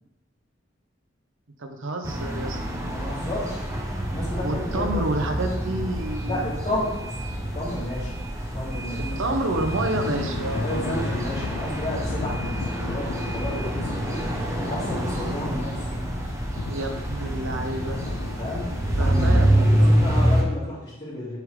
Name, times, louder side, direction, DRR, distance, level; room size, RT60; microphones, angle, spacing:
voice 1, 1.6-2.8 4.4-6.5 9.2-10.7 16.7-18.0 19.0-19.9, right 2 dB, 80° right, 4 dB, 0.9 m, -29 dB
sound 1, 2.0-20.4, equal, 15° right, 0.9 m, -26 dB
voice 2, 2.9-3.6 4.1-5.0 6.3-7.2 7.5-8.2 8.5-9.3 10.5-14.3 14.5-15.9 18.4-18.7 19.0-19.3 19.6-21.4, left 1 dB, 35° left, -13 dB, 2.1 m, -32 dB
Thunder / Rain, 9.5-20.1, left 4 dB, 65° left, 0.4 m, -36 dB
6.9 x 3.9 x 4.7 m, 0.96 s
head